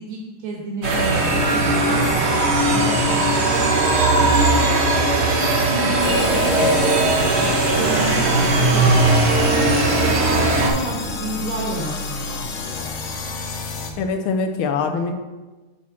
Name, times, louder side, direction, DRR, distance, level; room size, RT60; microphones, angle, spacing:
voice 1, 0.0-4.9 5.2-7.5 7.8-9.7 10.0-12.9, right 2 dB, 70° right, -2 dB, 1.9 m, -31 dB
sound 1, 0.8-10.7, right 2 dB, 45° right, 0.9 m, -18 dB
sound 2, 6.0-13.9, left 3 dB, 65° left, 0.7 m, -30 dB
voice 2, 14.0-15.1, left 4 dB, 90° left, 5 dB, 1.6 m, -23 dB
6.2 x 4.2 x 6.1 m, 1.2 s
omnidirectional pair, 2.3 m